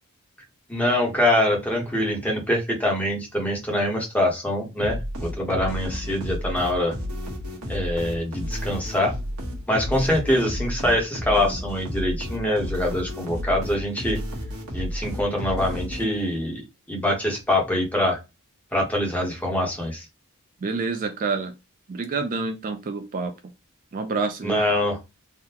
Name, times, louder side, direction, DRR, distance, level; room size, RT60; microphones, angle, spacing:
voice 1, 0.7-6.9 7.7-9.1 9.7-14.2 14.7-16.6 16.9-18.2 18.7-20.0 24.4-25.0, left 1 dB, 5° left, 0 dB, 1.0 m, -24 dB
sound 1, 4.8-16.4, equal, 80° right, 1.1 m, -32 dB
voice 2, 20.6-21.5 21.9-23.3 23.9-24.6, right 4 dB, 40° right, 7 dB, 0.4 m, -28 dB
3.6 x 2.2 x 2.8 m, 0.24 s
head